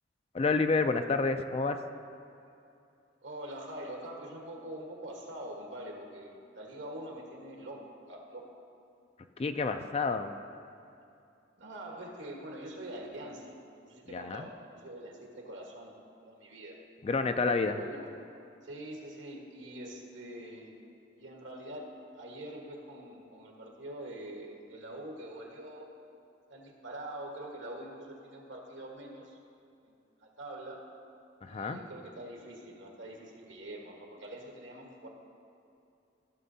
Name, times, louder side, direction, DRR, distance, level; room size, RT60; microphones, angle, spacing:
voice 1, 0.3-1.8 9.4-10.3 14.1-14.5 17.0-17.8 31.4-31.8, left 4 dB, 30° left, 8 dB, 0.3 m, -29 dB
voice 2, 3.2-8.4 11.6-15.9 16.2-16.8 17.6-18.3 18.6-20.7 21.2-25.9 26.5-29.4 29.9-30.0 30.2-30.9 31.5-35.1, right 1 dB, 80° right, 0 dB, 1.4 m, -44 dB
14.5 x 6.6 x 2.7 m, 2.6 s
head